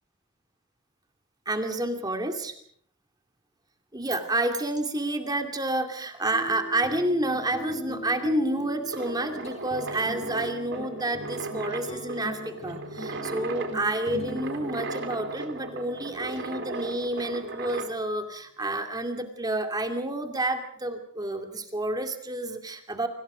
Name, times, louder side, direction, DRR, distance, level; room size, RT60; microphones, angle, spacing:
voice 1, 1.5-2.5 3.9-23.1, right 1 dB, 20° right, 5 dB, 2.5 m, -29 dB
sound 1, 6.3-17.2, left 1 dB, 30° left, 4.2 m, -40 dB
sound 2, 8.9-18.0, right 3 dB, 60° right, 3.7 m, -37 dB
29.5 x 26.0 x 5.1 m, 0.62 s
head